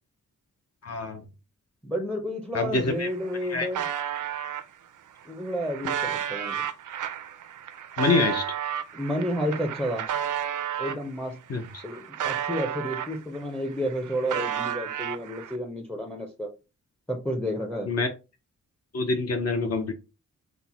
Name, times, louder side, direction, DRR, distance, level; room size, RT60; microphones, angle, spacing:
voice 1, 0.8-1.2 2.5-3.1 3.5-3.7 8.0-8.4 11.5-11.8 17.9-18.1 18.9-19.9, left 3 dB, 55° left, 0.6 m, -26 dB
voice 2, 1.8-3.8 5.3-6.6 8.9-10.1 10.8-11.4 11.8-16.5 17.1-17.9, equal, 5° left, 0.5 m, -31 dB
sound 1, 2.7-2.8 3.1-4.6 5.2-11.0 11.5-13.4 13.7-15.6, right 9 dB, 80° right, 0.5 m, -32 dB
4.3 x 2.1 x 4.1 m
wide cardioid pair, 170°, 30 cm